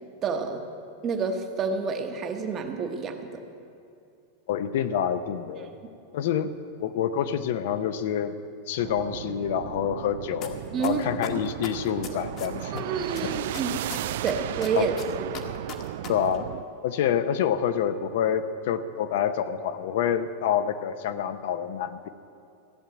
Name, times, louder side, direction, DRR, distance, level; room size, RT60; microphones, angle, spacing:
voice 1, 0.2-0.6 1.0-3.4 10.7-11.0 12.7-13.8 14.2-14.9 15.3-15.4, right 5 dB, 20° right, 5 dB, 1.0 m, -28 dB
voice 2, 4.5-5.7 6.1-8.3 8.7-12.9 13.2-13.4 14.8-14.9 16.1-16.5 16.8-22.1, left 9 dB, 60° left, 11 dB, 0.6 m, -27 dB
sound 1, 8.8-16.6, right 13 dB, 65° right, 0.3 m, -35 dB
sound 2, 10.4-10.5 10.8-12.8 13.1-16.1 16.3-16.4, left 7 dB, 30° left, 1.1 m, -37 dB
15.0 x 7.3 x 9.2 m, 2.5 s
supercardioid pair, 170°, 0 cm